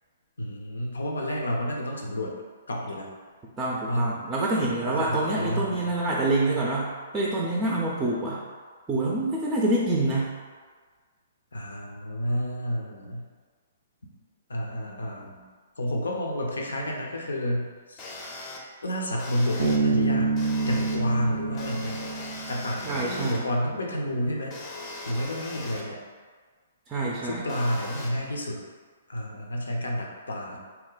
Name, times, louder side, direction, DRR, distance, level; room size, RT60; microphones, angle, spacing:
voice 1, 0.4-2.3 2.7-3.1 3.9-4.2 4.9-5.9 11.5-13.2 14.5-15.4 15.8-18.1 18.8-20.3 20.6-22.1 22.5-24.5 25.0-26.0 27.2-28.6 29.1-30.6, equal, 80° left, 0 dB, 0.6 m, -30 dB
voice 2, 3.6-8.4 8.9-10.4 22.9-23.4 26.9-27.4, right 2 dB, 15° right, -4 dB, 0.5 m, -26 dB
sound 1, 18.0-18.6 19.2-19.8 20.4-21.0 21.5-23.4 24.5-25.8 27.5-28.1, left 2 dB, 25° left, 0.6 m, -39 dB
Bass guitar, 19.6-23.1, right 4 dB, 75° right, 0.5 m, -27 dB
2.8 x 2.2 x 3.8 m, 1.5 s
hypercardioid pair, 125°, 0 cm